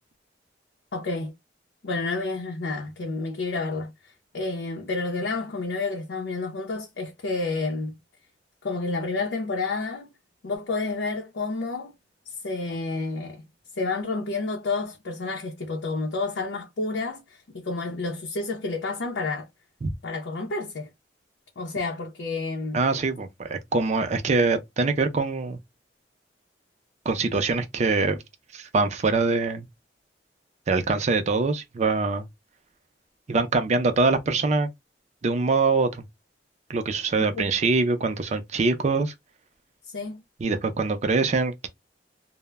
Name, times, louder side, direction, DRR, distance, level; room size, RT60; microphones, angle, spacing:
voice 1, 0.9-1.3 1.8-7.9 8.6-10.1 10.4-12.0 12.3-13.4 13.8-19.5 20.0-20.9 21.6-22.8 37.2-37.5 39.9-40.2, left 3 dB, 85° left, 0.5 m, -30 dB
voice 2, 22.7-25.6 27.1-28.2 28.5-29.7 30.7-32.3 33.3-34.7 35.2-36.0 36.7-39.1 40.4-41.7, right 3 dB, 40° right, 0.4 m, -24 dB
2.1 x 2.0 x 3.3 m
head